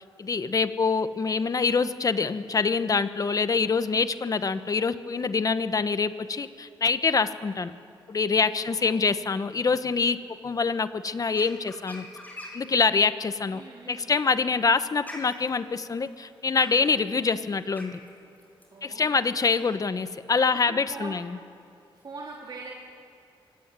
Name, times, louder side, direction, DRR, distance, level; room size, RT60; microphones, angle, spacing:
voice 1, 0.2-7.7 8.1-10.2 10.4-12.1 12.5-13.6 13.9-18.0 18.8-21.3, left 5 dB, 40° left, 12 dB, 1.1 m, -25 dB
voice 2, 8.6-9.1 13.5-14.2 18.7-19.4 20.5-21.2 21.9-22.7, right 3 dB, 50° right, -3 dB, 3.5 m, -43 dB
sound 1, 11.3-12.7 14.1-19.7, left 1 dB, 20° left, 5.3 m, -44 dB
24.5 x 24.0 x 9.1 m, 2.6 s
cardioid pair, 100°, 9 cm